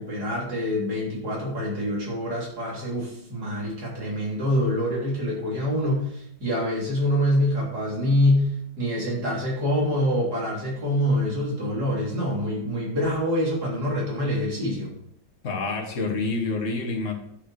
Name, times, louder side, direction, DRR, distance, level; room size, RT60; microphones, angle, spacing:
voice 1, 0.0-14.9, equal, 55° right, -4 dB, 3.9 m, -25 dB
voice 2, 15.4-17.1, left 3 dB, 40° left, 2 dB, 1.9 m, -27 dB
11.5 x 7.0 x 4.8 m, 0.73 s
omnidirectional pair, 2.0 m